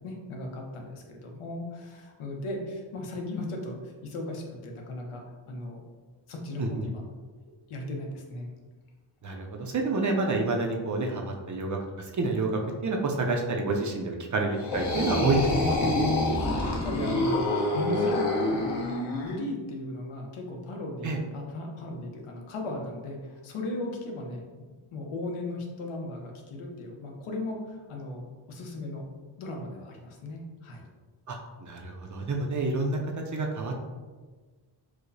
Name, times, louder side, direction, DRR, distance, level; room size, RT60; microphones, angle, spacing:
voice 1, 0.0-5.2 5.5-5.8 6.3-7.0 7.7-8.5 16.2-17.5 17.7-29.1 29.4-30.9, left 1 dB, 80° left, 1 dB, 0.8 m, -37 dB
voice 2, 9.2-15.8 21.0-21.2 31.3-33.8, right 2 dB, 40° right, 2 dB, 0.4 m, -29 dB
sound 1, 14.5-19.3, left 2 dB, 55° left, 1.0 m, -27 dB
4.6 x 2.1 x 2.6 m, 1.4 s
cardioid pair, 105°, 49 cm